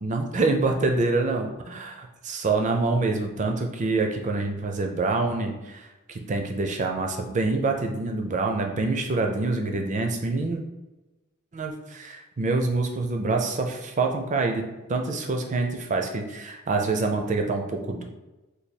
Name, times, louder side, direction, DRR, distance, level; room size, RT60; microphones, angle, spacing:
voice 1, 0.0-5.8 6.1-10.6 11.5-14.6 14.9-18.0, right 3 dB, 35° right, 3 dB, 0.4 m, -26 dB
3.3 x 2.2 x 4.1 m, 1.1 s
head